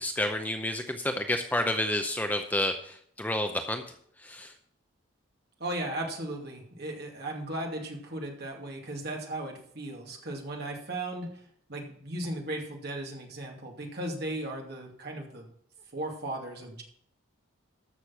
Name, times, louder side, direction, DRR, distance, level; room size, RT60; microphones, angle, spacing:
voice 1, 0.0-3.8 4.2-4.5, left 1 dB, 10° left, 5 dB, 0.6 m, -30 dB
voice 2, 5.6-11.4 11.7-15.5 15.9-16.8, right 1 dB, 50° right, 0 dB, 2.5 m, -36 dB
13.5 x 6.5 x 5.9 m, 0.64 s
head